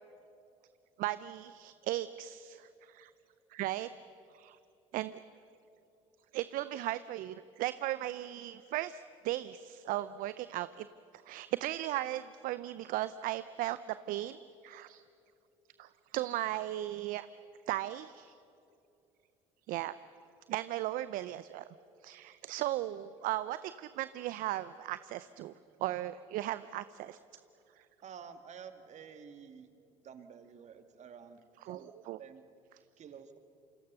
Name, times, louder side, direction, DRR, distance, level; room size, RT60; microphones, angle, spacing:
voice 1, 1.0-3.1 3.5-3.9 4.3-4.6 4.9-5.2 6.3-10.9 11.2-13.8 14.1-15.0 15.8-17.3 17.7-18.3 19.7-19.9 20.5-21.6 22.0-25.5 25.8-27.2 31.7-31.8 32.1-32.2, right 15 dB, 65° right, 15 dB, 0.6 m, -36 dB
voice 2, 28.0-29.7 30.0-31.9 32.2-32.5 33.0-33.4, right 7 dB, 50° right, 8 dB, 2.1 m, -50 dB
28.0 x 25.5 x 6.8 m, 2.7 s
hypercardioid pair, 65°, 15 cm